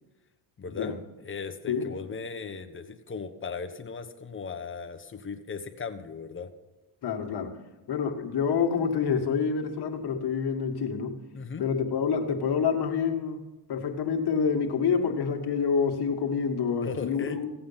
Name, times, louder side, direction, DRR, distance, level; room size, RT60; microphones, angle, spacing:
voice 1, 0.6-6.5 11.3-11.7 16.8-17.4, left 5 dB, 25° left, 7 dB, 1.1 m, -37 dB
voice 2, 7.0-7.5 7.9-11.2 11.6-13.4 13.7-17.5, left 6 dB, 50° left, 3 dB, 1.8 m, -27 dB
16.0 x 8.5 x 5.7 m, 1.1 s
cardioid pair, 110°, 49 cm